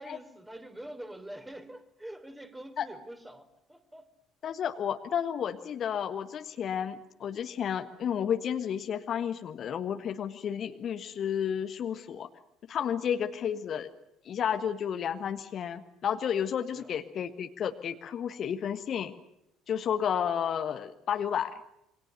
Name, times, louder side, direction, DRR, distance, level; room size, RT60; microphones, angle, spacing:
voice 1, 0.0-4.1 16.8-16.9, right 1 dB, 10° right, 3.6 m, -45 dB
voice 2, 4.4-12.3 12.7-13.9 14.2-19.1 19.7-21.6, left 8 dB, 45° left, 1.5 m, -32 dB
28.0 x 24.0 x 6.8 m
figure-of-eight pair, 55°, 0 cm